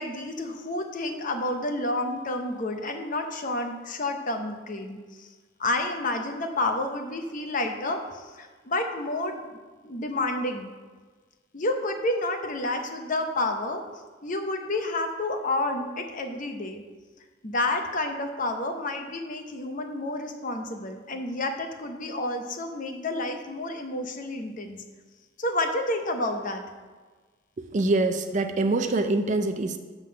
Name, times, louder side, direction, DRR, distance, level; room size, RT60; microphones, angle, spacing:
voice 1, 0.0-5.3 5.6-9.4 9.8-10.7 11.5-13.8 14.2-16.8 17.4-24.8 25.4-26.6, left 2 dB, 40° left, 5 dB, 0.7 m, -30 dB
voice 2, 27.6-29.8, right 2 dB, 35° right, 7 dB, 0.4 m, -25 dB
7.7 x 3.7 x 6.3 m, 1.4 s
head